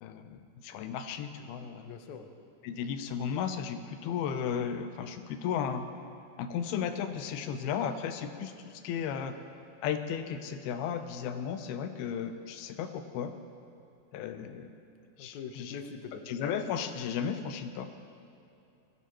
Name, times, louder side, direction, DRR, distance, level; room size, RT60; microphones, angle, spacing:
voice 1, 0.0-1.9 2.6-5.8 6.4-9.4 9.8-13.3 14.1-14.7 15.2-15.8 16.3-17.9, left 7 dB, 90° left, 8 dB, 2.7 m, -35 dB
voice 2, 1.8-2.3 15.2-16.2, left 6 dB, 70° left, 5 dB, 1.9 m, -43 dB
22.5 x 16.5 x 3.0 m, 2.7 s
omnidirectional pair, 4.3 m